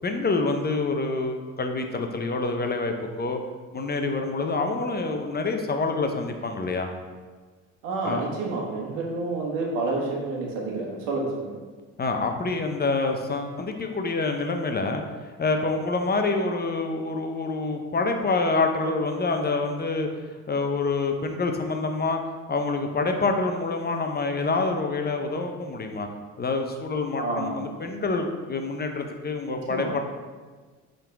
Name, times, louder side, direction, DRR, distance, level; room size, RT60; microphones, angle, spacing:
voice 1, 0.0-3.4 3.7-6.9 8.0-8.2 12.0-22.2 22.5-26.1 26.4-30.0, left 3 dB, 25° left, 4 dB, 0.8 m, -27 dB
voice 2, 7.8-11.6 27.2-27.7 29.5-30.0, right 3 dB, 90° right, -1 dB, 1.5 m, -29 dB
8.4 x 4.0 x 3.5 m, 1.4 s
supercardioid pair, 80°, 37 cm